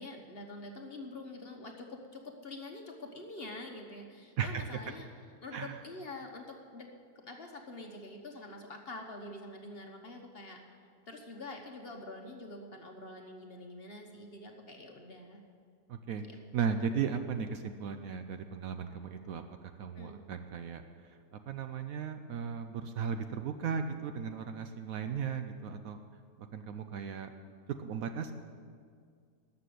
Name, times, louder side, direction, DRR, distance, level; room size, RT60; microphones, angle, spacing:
voice 1, 0.0-5.1 5.4-6.9 7.1-10.6 11.1-15.4 16.2-16.4 16.7-16.9 19.9-20.2, left 2 dB, 40° left, 3 dB, 1.1 m, -46 dB
voice 2, 4.4-4.8 5.5-5.8 15.9-16.2 16.5-19.4 19.8-20.8 21.1-26.0 26.4-27.3 27.8-28.3, right 6 dB, 65° right, 8 dB, 1.0 m, -36 dB
13.5 x 6.9 x 9.2 m, 2.1 s
omnidirectional pair, 1.7 m